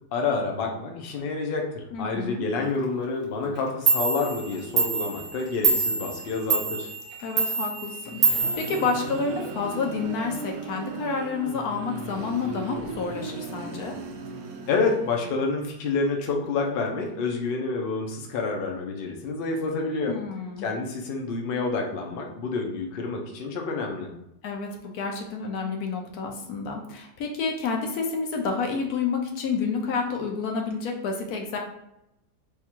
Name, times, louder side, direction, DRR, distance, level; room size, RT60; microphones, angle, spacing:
voice 1, 0.1-6.9 14.7-20.1 20.6-24.1, left 4 dB, 85° left, 1 dB, 0.5 m, -28 dB
voice 2, 1.9-2.5 7.2-14.0 20.1-20.7 24.4-31.6, left 5 dB, 65° left, 2 dB, 1.1 m, -29 dB
Clock, 3.6-3.7 3.9-9.5, right 5 dB, 45° right, 0.7 m, -26 dB
sound 1, 7.8-15.5, right 4 dB, 80° right, 1.3 m, -37 dB
3.5 x 2.3 x 4.4 m, 0.85 s
omnidirectional pair, 1.9 m